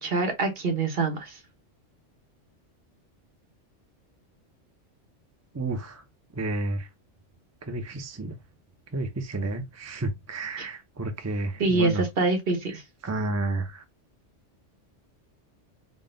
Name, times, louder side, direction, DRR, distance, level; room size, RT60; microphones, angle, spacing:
voice 1, 0.0-1.4 10.6-10.7 11.6-12.8, right 3 dB, 55° right, 1.2 m, -25 dB
voice 2, 5.5-6.0 6.4-6.8 7.7-8.3 8.9-12.0 13.0-13.8, right 2 dB, 25° right, 0.3 m, -31 dB
3.8 x 2.2 x 3.7 m
omnidirectional pair, 1.3 m